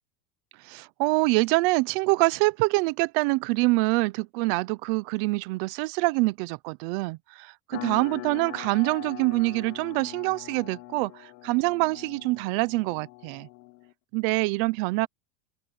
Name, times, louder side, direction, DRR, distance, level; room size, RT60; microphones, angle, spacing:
voice 1, 0.7-11.1 11.4-13.5 14.1-15.1, right 24 dB, 35° right, 0.7 m, -25 dB
sound 1, 7.7-13.9, left 21 dB, 40° left, 1.1 m, -42 dB
open air
supercardioid pair, 165°, 45 cm